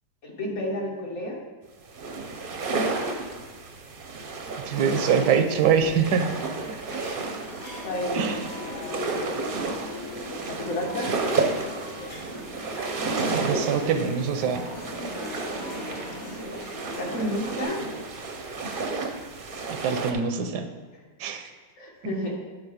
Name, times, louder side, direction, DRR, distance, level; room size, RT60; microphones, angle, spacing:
voice 1, 0.2-1.4 6.6-6.8 7.2-7.3 7.8-8.2 8.6-9.4 10.5-11.1 17.0-17.8 21.8-22.4, left 1 dB, 45° left, -2 dB, 1.5 m, -31 dB
sound 1, 1.9-20.1, right 3 dB, 45° right, 0.7 m, -32 dB
voice 2, 4.6-6.3 8.1-8.4 13.3-14.6 19.7-20.7 21.2-21.5, right 7 dB, 80° right, 8 dB, 1.3 m, -24 dB
sound 2, 6.8-17.6, left 1 dB, 65° left, 2.2 m, -38 dB
9.6 x 4.2 x 5.0 m, 1.5 s
omnidirectional pair, 1.8 m